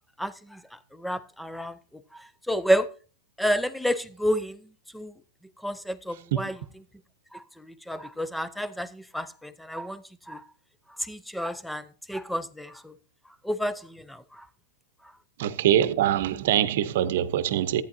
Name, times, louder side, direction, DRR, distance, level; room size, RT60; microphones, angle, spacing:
voice 1, 0.2-0.6 1.0-1.7 2.5-2.9 3.4-4.6 4.9-5.1 5.6-6.6 7.3-10.0 10.3-10.4 11.1-12.9 13.4-14.2, equal, ahead, 0.5 m, -30 dB
voice 2, 15.4-17.8, right 11 dB, 60° right, 0.8 m, -23 dB
14.0 x 9.4 x 2.7 m
supercardioid pair, 155°, 0 cm